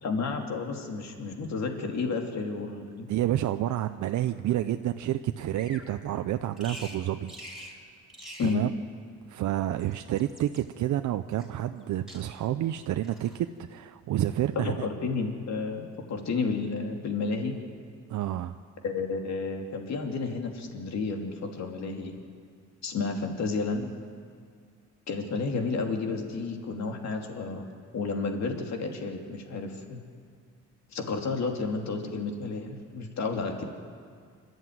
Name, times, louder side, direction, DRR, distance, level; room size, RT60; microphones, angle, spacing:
voice 1, 0.0-3.1 8.4-8.6 14.5-17.6 18.8-22.2 22.8-23.9 25.1-27.6 27.9-30.0 30.9-33.7, left 4 dB, 60° left, 3 dB, 2.9 m, -31 dB
voice 2, 3.1-7.3 8.4-8.7 9.3-14.7 18.1-18.6, right 12 dB, 70° right, 8 dB, 0.7 m, -29 dB
Bird vocalization bird call bird song, 5.5-5.9 6.6-7.0 7.3-7.8 8.1-8.6 9.6-10.6 11.4-11.8 12.1-12.6 13.0-13.4, equal, ahead, 5.5 m, -46 dB
25.5 x 13.0 x 9.5 m, 2.1 s
cardioid pair, 90°, 30 cm